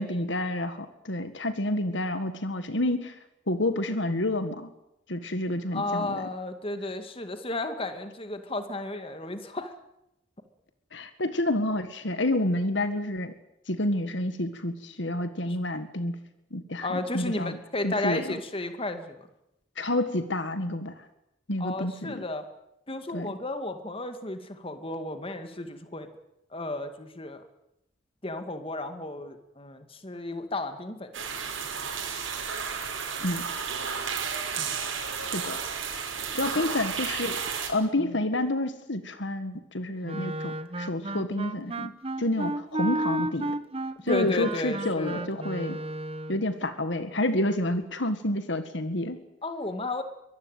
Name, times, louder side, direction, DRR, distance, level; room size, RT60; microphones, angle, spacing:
voice 1, 0.0-3.2 3.5-4.7 5.1-6.2 10.9-13.3 13.7-16.2 16.5-17.6 17.8-18.4 19.8-20.9 21.5-22.2 23.1-23.4 33.2-33.4 35.2-35.6 36.3-37.4 37.7-41.9 42.2-43.6 44.0-45.8 46.3-49.2, left 1 dB, 65° left, 10 dB, 1.8 m, -29 dB
voice 2, 5.7-9.7 15.5-15.6 16.8-19.2 21.6-22.4 22.9-26.1 26.5-27.5 28.2-31.2 34.6-34.8 38.0-38.2 44.1-45.3 49.4-50.0, left 2 dB, 30° left, 8 dB, 2.3 m, -33 dB
sound 1, 31.1-37.7, right 6 dB, 85° right, 5.7 m, -32 dB
Wind instrument woodwind instrument, 40.0-46.4, right 2 dB, 30° right, 1.1 m, -33 dB
23.5 x 20.0 x 9.1 m, 0.85 s
head